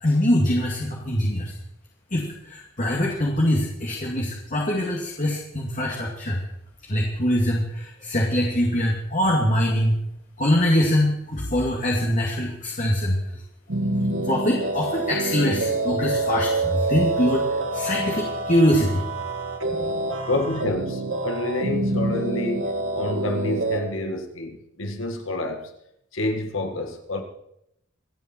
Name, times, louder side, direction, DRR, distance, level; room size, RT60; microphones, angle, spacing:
voice 1, 0.0-1.5 2.1-6.4 6.9-10.0 10.4-13.2 14.2-17.4 17.7-19.0 19.6-19.9, left 1 dB, 40° left, -2 dB, 2.4 m, -23 dB
sound 1, 13.7-23.8, right 2 dB, 80° right, 1.8 m, -26 dB
voice 2, 20.3-25.7 26.1-27.2, left 2 dB, 80° left, 5 dB, 1.9 m, -28 dB
26.0 x 9.0 x 4.5 m, 0.78 s
head